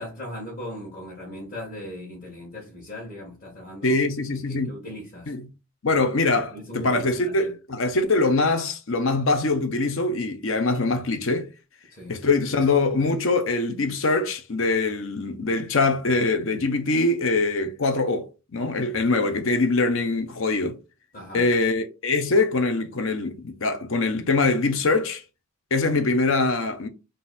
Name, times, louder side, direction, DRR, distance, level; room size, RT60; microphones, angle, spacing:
voice 1, 0.0-4.0 4.5-5.3 6.5-7.5 11.9-12.2 21.1-21.5, left 1 dB, 35° left, 1.4 m, -38 dB
voice 2, 3.8-4.8 5.3-5.5 5.8-11.5 12.1-20.8 21.3-25.2 25.7-26.9, left 3 dB, 65° left, 0.7 m, -23 dB
3.9 x 2.6 x 4.0 m
head